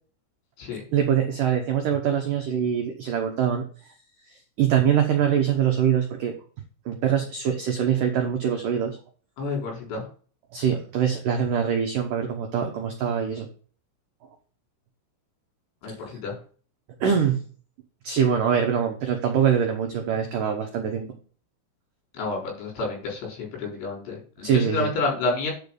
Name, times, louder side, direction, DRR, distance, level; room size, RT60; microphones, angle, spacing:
voice 1, 0.9-3.6 4.6-6.3 6.9-9.0 10.5-13.5 17.0-17.4 18.0-21.1 24.4-24.9, right 8 dB, 80° right, 3 dB, 1.9 m, -23 dB
voice 2, 9.4-10.1 15.8-16.4 22.1-25.5, left 3 dB, 65° left, -1 dB, 6.2 m, -29 dB
10.5 x 5.0 x 5.4 m, 0.40 s
omnidirectional pair, 5.7 m